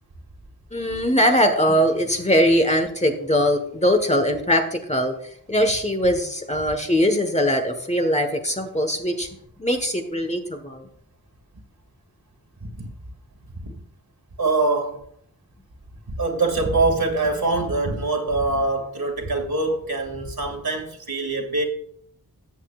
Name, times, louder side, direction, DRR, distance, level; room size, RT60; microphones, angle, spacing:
voice 1, 0.7-5.1 5.5-9.3 9.6-10.9, equal, 20° left, 1.4 m, -21 dB
voice 2, 14.4-15.0 16.1-21.6, right 3 dB, 75° right, 2.3 m, -24 dB
14.0 x 8.4 x 2.5 m
wide cardioid pair, 85°, 37 cm